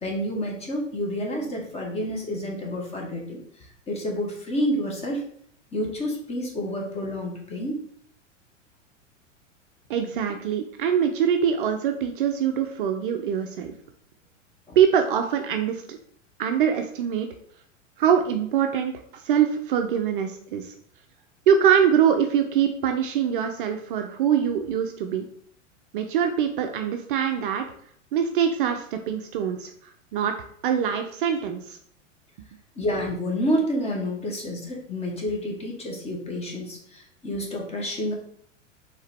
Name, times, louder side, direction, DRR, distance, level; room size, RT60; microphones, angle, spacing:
voice 1, 0.0-3.4 3.9-5.2 5.7-7.8 14.7-14.8 32.8-38.1, equal, 15° left, -1 dB, 1.0 m, -29 dB
voice 2, 9.9-13.7 14.8-16.0 16.4-17.3 18.0-20.7 21.5-25.3 25.9-27.6 28.1-30.3 30.6-31.8, right 8 dB, 45° right, 5 dB, 0.5 m, -23 dB
4.5 x 3.3 x 3.3 m, 0.63 s
figure-of-eight pair, 95°, 38 cm